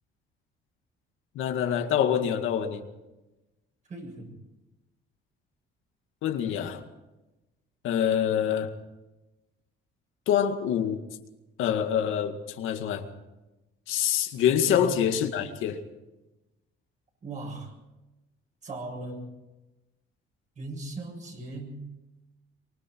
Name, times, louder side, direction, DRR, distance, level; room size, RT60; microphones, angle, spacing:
voice 1, 1.4-2.8 6.2-6.8 7.8-8.7 10.3-11.0 11.6-13.1 13.9-15.8, left 9 dB, 85° left, 6 dB, 2.0 m, -26 dB
voice 2, 3.9-4.3 14.7-15.0 17.2-17.7 18.6-19.3 20.6-21.9, right 2 dB, 40° right, 1 dB, 7.4 m, -38 dB
24.5 x 24.5 x 4.6 m, 1.0 s
cardioid pair, 150°, 20 cm